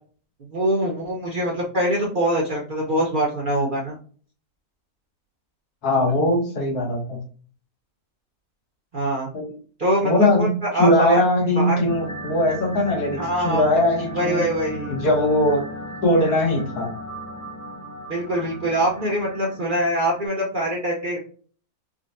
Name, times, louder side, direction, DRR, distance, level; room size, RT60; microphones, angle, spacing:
voice 1, 0.5-3.9 8.9-9.3 9.8-11.2 11.6-11.8 13.2-13.8 14.1-14.9 18.1-21.2, right 1 dB, 45° right, -3 dB, 0.7 m, -23 dB
voice 2, 5.8-7.2 9.3-9.6 10.0-14.4 14.9-15.6 16.0-16.9, left 1 dB, 80° left, 0 dB, 1.6 m, -20 dB
sound 1, 11.9-20.3, equal, 15° left, 0.6 m, -36 dB
3.7 x 2.2 x 2.5 m, 0.42 s
omnidirectional pair, 1.6 m